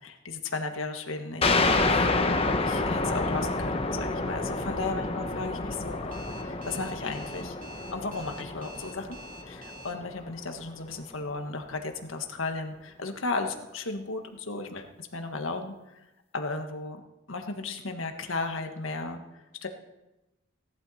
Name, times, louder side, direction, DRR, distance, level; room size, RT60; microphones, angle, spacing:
voice 1, 0.0-1.6 1.8-2.0 2.6-7.5 7.9-9.2 9.4-15.7 16.3-17.0 17.3-19.7, left 3 dB, 90° left, 5 dB, 1.6 m, -35 dB
sound 1, 1.4-10.6, left 3 dB, 30° left, 1.0 m, -29 dB
Alarm, 6.1-9.9, right 2 dB, 45° right, 1.7 m, -47 dB
17.5 x 11.5 x 4.3 m, 0.99 s
head